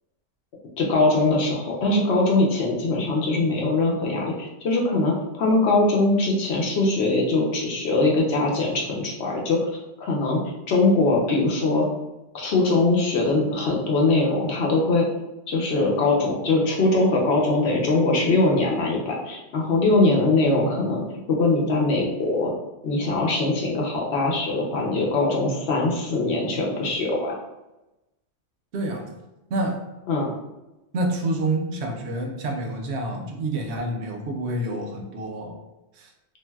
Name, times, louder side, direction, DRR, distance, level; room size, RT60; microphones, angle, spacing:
voice 1, 0.8-9.7 10.0-10.4 10.7-11.8 12.3-15.1 15.5-22.5 22.8-27.3 30.1-30.3, left 2 dB, 65° left, -1 dB, 0.9 m, -22 dB
voice 2, 28.7-29.2 29.5-29.8 30.9-35.6 35.9-36.1, right 1 dB, 70° right, 3 dB, 0.8 m, -28 dB
3.2 x 2.6 x 2.2 m, 0.99 s
omnidirectional pair, 1.2 m